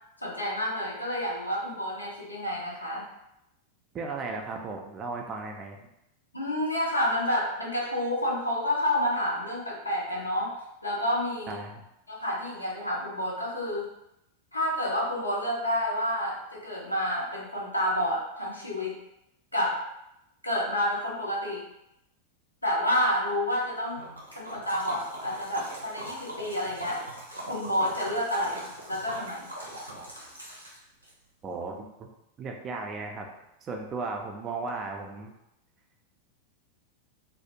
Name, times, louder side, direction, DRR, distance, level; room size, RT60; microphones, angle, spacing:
voice 1, 0.2-3.1 6.3-10.5 10.8-11.6 12.1-13.9 14.5-19.0 19.5-19.8 20.4-21.6 22.6-24.0 24.4-27.0 27.5-29.5, left 1 dB, 85° left, -3 dB, 0.6 m, -29 dB
voice 2, 3.9-5.9 11.5-11.8 31.4-32.1 32.4-33.3 33.6-35.3, right 3 dB, 25° right, 2 dB, 0.4 m, -36 dB
Liquid, 24.0-31.1, right 1 dB, 85° right, 0.5 m, -40 dB
2.4 x 2.0 x 2.8 m, 0.85 s
figure-of-eight pair, 90°, 0 cm